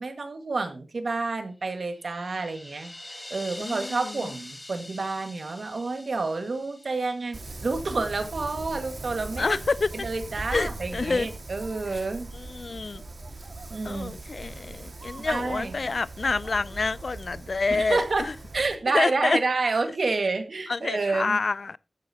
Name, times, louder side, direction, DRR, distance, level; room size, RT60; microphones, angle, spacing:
voice 1, 0.0-2.9 3.3-9.6 10.0-12.3 13.7-14.1 15.2-15.7 17.7-18.3 18.5-21.4, right 3 dB, 85° right, 1.8 m, -29 dB
sound 1, 1.8-8.0, left 1 dB, 25° left, 2.3 m, -44 dB
voice 2, 3.6-4.3 9.4-10.1 10.5-11.3 12.3-13.0 13.8-18.3 18.9-19.4 20.7-21.8, left 3 dB, 75° left, 0.4 m, -28 dB
Wind, 7.3-18.8, right 2 dB, 65° right, 1.9 m, -40 dB
14.0 x 9.0 x 2.9 m
wide cardioid pair, 75°, 0 cm